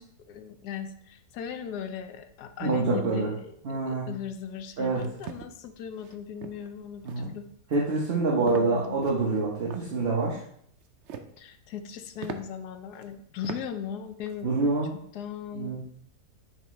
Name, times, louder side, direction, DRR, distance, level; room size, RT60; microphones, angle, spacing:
voice 1, 0.0-7.5 8.3-9.0 11.4-14.6 15.1-15.8, left 8 dB, 75° left, 8 dB, 1.1 m, -38 dB
voice 2, 2.6-3.3 3.6-4.1 4.8-5.0 7.0-7.3 7.7-10.4 14.4-14.9 15.5-15.8, right 3 dB, 45° right, -4 dB, 1.0 m, -26 dB
sound 1, 4.9-5.5 6.0-6.2 6.4-6.7 7.1-7.4 7.7-8.1 8.5-8.7 9.0-9.9 10.8-11.4 11.8-11.9 12.2-12.4 13.0-13.1 13.4-13.6 14.0-14.4, right 8 dB, 85° right, 0.6 m, -40 dB
9.2 x 3.6 x 3.1 m, 0.67 s
omnidirectional pair, 1.8 m